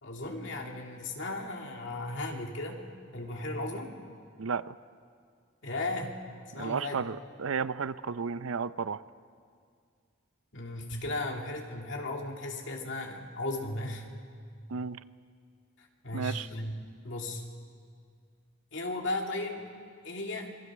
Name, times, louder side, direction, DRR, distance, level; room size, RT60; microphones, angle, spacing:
voice 1, 0.0-2.9 3.1-4.0 5.6-6.2 6.5-7.0 10.5-14.1 15.8-16.8 17.0-17.4 18.7-19.7 20.0-20.5, left 2 dB, 60° left, 1 dB, 2.6 m, -36 dB
voice 2, 4.4-4.7 6.6-9.0 14.7-15.0 16.1-16.5, right 5 dB, 80° right, 15 dB, 0.6 m, -33 dB
26.0 x 21.5 x 6.2 m, 2.2 s
head